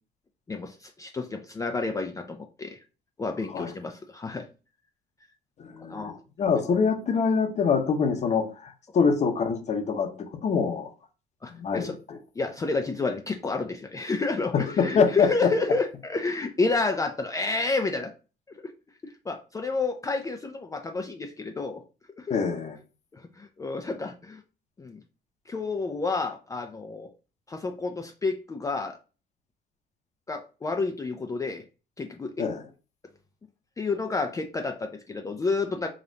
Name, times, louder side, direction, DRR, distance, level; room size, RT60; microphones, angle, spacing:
voice 1, 0.5-2.8 3.2-4.5 5.8-6.2 11.4-11.9 12.4-18.1 19.0-21.8 22.2-22.4 23.1-24.4 24.8-25.0 25.5-27.1 27.5-29.0 30.3-31.6 32.0-32.4 33.8-35.9, left 3 dB, 20° left, 4 dB, 0.4 m, -30 dB
voice 2, 5.6-10.9 11.5-12.2 14.5-15.5 22.3-22.8 32.4-32.6, left 5 dB, 45° left, 6 dB, 0.8 m, -25 dB
5.1 x 2.5 x 2.7 m, 0.34 s
cardioid pair, 110°, 17 cm